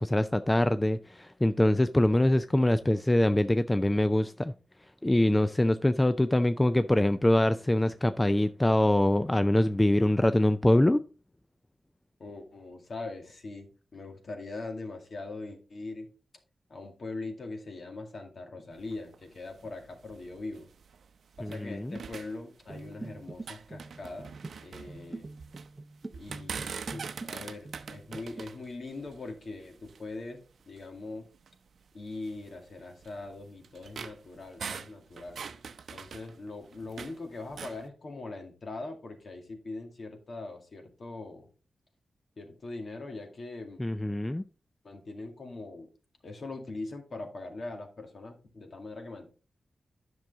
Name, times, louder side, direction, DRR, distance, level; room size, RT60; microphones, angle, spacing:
voice 1, 0.0-4.5 5.0-11.0 21.4-22.0 43.8-44.4, left 1 dB, 15° left, 0.4 m, -24 dB
voice 2, 12.2-16.1 16.7-20.7 21.4-24.3 24.6-25.3 26.1-30.4 30.7-31.3 31.9-35.4 35.9-41.5 42.4-43.8 44.8-45.9 46.2-49.3, left 2 dB, 55° left, 2.1 m, -41 dB
sound 1, 18.7-21.7 22.0-23.0 23.3-25.7 26.1-30.1 30.8-30.9 31.3-31.5 32.2-37.2 37.5-37.8, right 6 dB, 75° right, 0.6 m, -43 dB
sound 2, 22.7-27.4 27.6-28.5, right 2 dB, 30° right, 0.6 m, -45 dB
10.5 x 6.1 x 3.6 m
wide cardioid pair, 95°, 0 cm